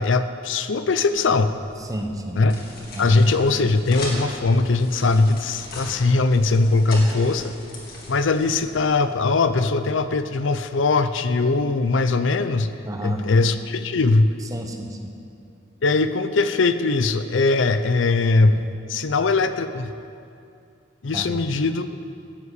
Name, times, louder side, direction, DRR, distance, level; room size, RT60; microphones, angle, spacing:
voice 1, 0.0-1.5 2.3-2.6 3.0-7.5 8.1-12.7 13.0-14.4 15.8-19.9 21.0-22.1, left 3 dB, 70° left, 11 dB, 0.6 m, -20 dB
sound 1, 1.4-9.2, left 1 dB, 50° left, 2.7 m, -38 dB
voice 2, 1.8-2.4 3.0-3.2 12.9-13.2 14.5-15.1 21.1-21.4, right 1 dB, 15° right, 4 dB, 1.0 m, -31 dB
14.5 x 8.2 x 8.2 m, 2.5 s
head